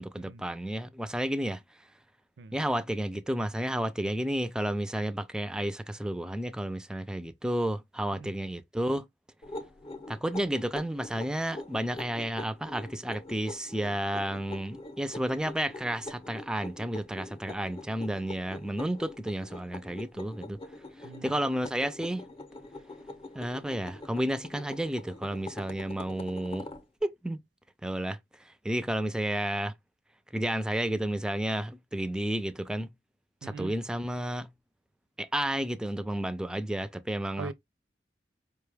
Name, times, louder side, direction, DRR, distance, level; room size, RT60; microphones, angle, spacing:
voice 1, 0.0-1.6 2.5-9.1 10.1-20.6 21.0-22.2 23.3-26.7 27.0-27.4 27.8-29.7 30.3-32.9 33.4-34.5 35.2-37.5, right 1 dB, 5° right, 0.3 m, -32 dB
sound 1, 9.4-26.8, left 2 dB, 30° left, 0.7 m, -44 dB
voice 2, 21.0-21.4 33.4-33.8 37.4-37.5, right 4 dB, 75° right, 0.4 m, -41 dB
4.9 x 2.3 x 3.3 m
head